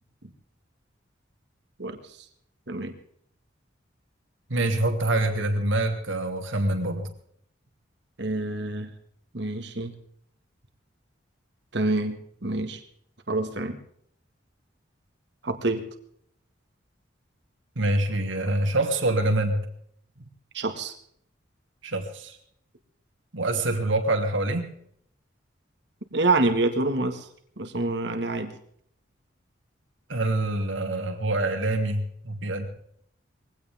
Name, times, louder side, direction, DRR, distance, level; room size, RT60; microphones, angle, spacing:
voice 1, 4.5-7.1 17.8-19.7 21.8-22.4 23.3-24.7 30.1-32.7, right 2 dB, 80° right, 4 dB, 2.7 m, -25 dB
voice 2, 8.2-8.9 9.3-9.9 11.7-12.8 13.3-13.8 15.4-15.8 20.5-20.9 26.1-27.2 27.6-28.5, right 2 dB, 60° right, 6 dB, 1.8 m, -26 dB
21.5 x 17.0 x 3.6 m, 0.67 s
head